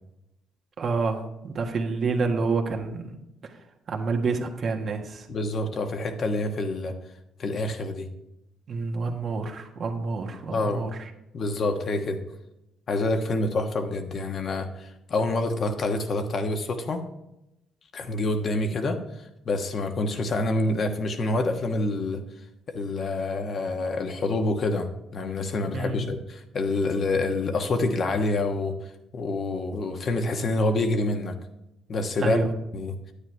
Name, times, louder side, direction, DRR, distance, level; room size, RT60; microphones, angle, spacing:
voice 1, 0.8-3.2 3.4-3.6 3.9-5.3 8.7-11.1 25.7-25.9 32.2-32.5, right 4 dB, 55° right, 3 dB, 1.5 m, -28 dB
voice 2, 5.3-6.9 7.4-8.1 10.5-10.8 11.3-12.2 12.9-17.0 17.9-19.0 19.5-22.2 22.7-28.7 29.1-31.3 31.9-32.4 32.7-32.9, left 2 dB, 50° left, 5 dB, 1.3 m, -27 dB
9.9 x 9.1 x 3.4 m, 0.88 s
supercardioid pair, 75°, 0 cm